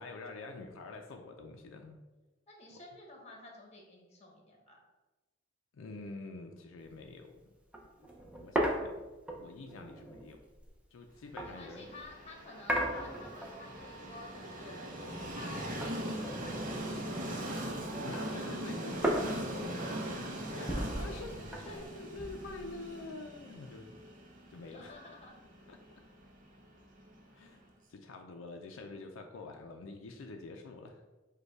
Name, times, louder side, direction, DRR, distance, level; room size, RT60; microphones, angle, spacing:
voice 1, 0.0-2.0 2.7-2.8 5.7-7.4 8.4-8.9 9.4-10.4 10.9-11.9 18.0-19.8 20.5-23.9 24.5-25.0 25.7-25.8 27.3-27.6 27.9-31.0, left 3 dB, 85° left, 3 dB, 0.4 m, -46 dB
voice 2, 2.5-4.8 11.4-17.7 20.5-21.8 24.6-25.4, left 2 dB, 35° left, 0 dB, 1.0 m, -52 dB
sound 1, 6.9-7.1 7.4-7.5 7.7-12.1 12.7-13.8 14.1-15.5 15.8-17.5 17.9-23.1, right 1 dB, 5° right, 0.6 m, -37 dB
Train, 11.7-27.5, right 1 dB, 45° right, 0.7 m, -40 dB
5.1 x 2.3 x 4.5 m, 1.1 s
head